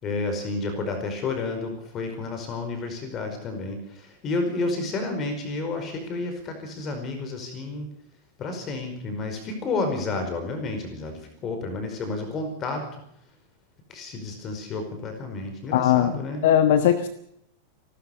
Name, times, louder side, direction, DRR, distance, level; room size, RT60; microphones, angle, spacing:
voice 1, 0.0-7.9 8.4-13.0 13.9-16.4, left 3 dB, 30° left, 6 dB, 4.9 m, -31 dB
voice 2, 15.7-16.1 16.4-17.1, left 10 dB, 55° left, 12 dB, 1.2 m, -19 dB
29.5 x 13.0 x 6.8 m, 0.74 s
figure-of-eight pair, 90°, 0 cm